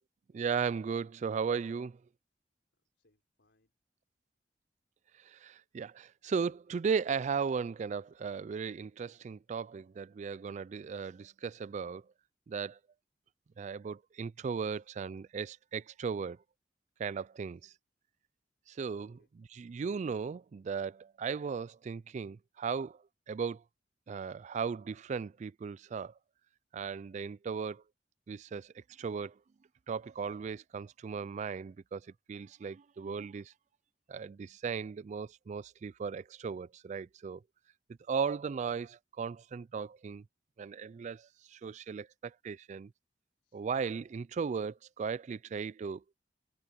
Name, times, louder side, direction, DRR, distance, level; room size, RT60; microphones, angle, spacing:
voice 1, 0.3-2.0 5.2-12.0 12.5-12.8 13.6-16.4 17.0-17.7 18.7-23.6 24.1-26.1 26.7-27.8 28.3-29.4 29.9-32.0 32.3-33.5 34.1-37.4 38.1-40.2 40.6-42.9 43.5-46.0, right 6 dB, 45° right, 0.3 m, -36 dB
voice 2, 2.7-3.7 14.6-14.9 17.5-17.7 19.0-19.3 43.4-43.7, left 1 dB, 90° left, 3.8 m, -74 dB
head